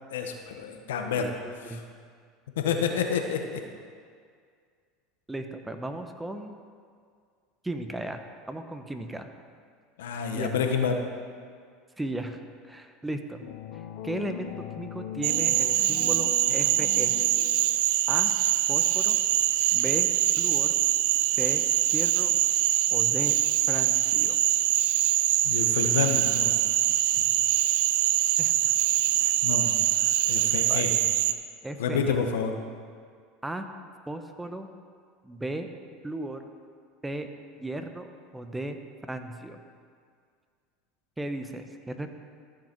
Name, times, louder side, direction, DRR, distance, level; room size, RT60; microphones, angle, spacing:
voice 1, 0.1-1.3 1.7-1.8 2.6-3.6 10.0-11.0 25.4-26.6 27.2-27.3 29.4-29.7 30.0-30.9 31.8-32.5, left 6 dB, 85° left, 5 dB, 1.0 m, -28 dB
voice 2, 1.2-1.8 5.3-6.6 7.6-8.2 8.5-9.3 10.3-10.5 12.0-12.4 12.6-13.5 13.7-17.1 18.1-18.3 18.7-19.2 19.7-20.1 20.4-20.7 21.3-22.3 22.9-23.4 23.7-24.4 28.4-28.7 29.2-29.3 30.7-30.8 31.6-32.2 33.4-33.7 34.1-34.7 35.2-35.7 36.0-36.4 37.0-37.3 37.6-39.6 41.2-42.1, right 1 dB, 10° right, 7 dB, 0.8 m, -36 dB
sound 1, 13.4-18.0, left 10 dB, 70° left, 0.5 m, -39 dB
Cricket / Frog, 15.2-31.3, right 14 dB, 75° right, 0.4 m, -24 dB
14.0 x 6.3 x 4.5 m, 2.1 s
hypercardioid pair, 95°, 0 cm